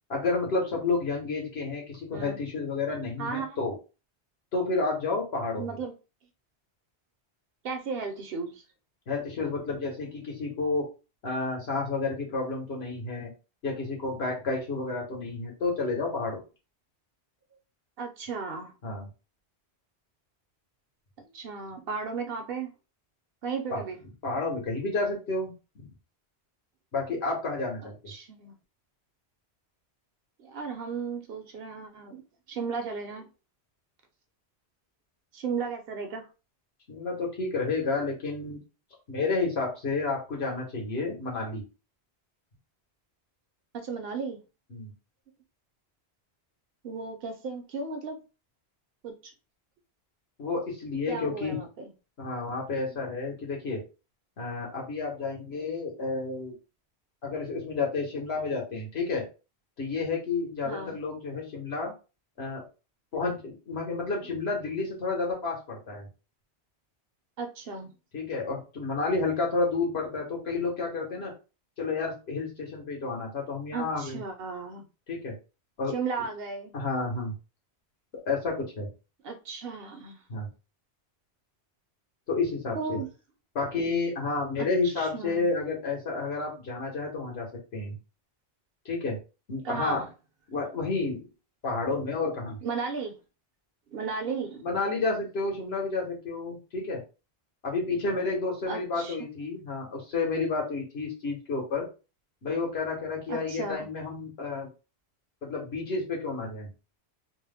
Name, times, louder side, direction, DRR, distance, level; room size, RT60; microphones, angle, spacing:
voice 1, 0.1-3.7 4.5-5.8 9.1-10.9 11.2-13.3 13.6-16.4 18.8-19.1 23.7-23.8 24.2-25.9 26.9-27.9 36.9-38.6 39.1-41.6 44.7-44.9 50.4-51.6 52.2-53.8 54.4-56.5 57.2-59.2 59.8-61.9 62.4-62.6 63.1-66.1 68.1-71.3 71.8-74.2 75.1-75.3 75.8-75.9 76.7-77.3 78.3-78.9 80.3-80.5 82.3-83.0 83.5-87.5 87.7-88.0 88.8-89.2 89.5-90.0 90.5-91.2 91.6-92.6 94.6-97.0 97.6-101.9 102.4-104.7 105.4-106.7, left 3 dB, 75° left, 1.4 m, -30 dB
voice 2, 3.2-3.6 5.6-5.9 7.6-8.6 18.0-18.7 21.3-22.7 23.4-24.0 27.8-28.6 30.4-32.2 32.5-33.3 35.3-36.3 43.7-44.4 46.8-48.2 49.0-49.3 51.1-51.9 52.9-53.0 60.6-61.0 67.4-67.9 73.7-74.8 75.9-76.7 79.2-80.2 82.7-83.1 84.6-85.5 89.6-90.1 92.6-93.2 93.9-94.7 98.7-99.2 103.3-103.9, right 5 dB, 65° right, 0.8 m, -35 dB
3.0 x 2.0 x 3.4 m
omnidirectional pair, 1.1 m